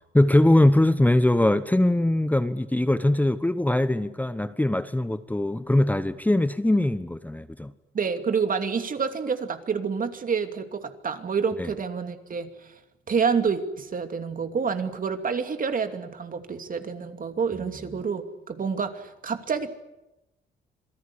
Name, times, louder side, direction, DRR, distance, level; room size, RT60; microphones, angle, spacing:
voice 1, 0.1-7.7 11.6-11.7, left 1 dB, 10° left, 11 dB, 1.0 m, -21 dB
voice 2, 7.9-12.7 13.1-19.7, right 5 dB, 45° right, 8 dB, 2.7 m, -28 dB
27.0 x 18.0 x 9.9 m, 0.94 s
cardioid pair, 90°, 20 cm